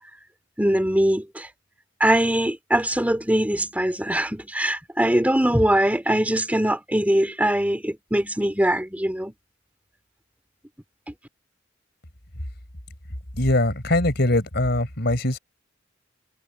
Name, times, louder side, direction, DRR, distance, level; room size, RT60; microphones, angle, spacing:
voice 1, 0.6-1.5 2.0-9.3, right 1 dB, 10° right, 3.4 m, -22 dB
voice 2, 13.4-15.4, left 1 dB, 60° left, 4.5 m, -22 dB
head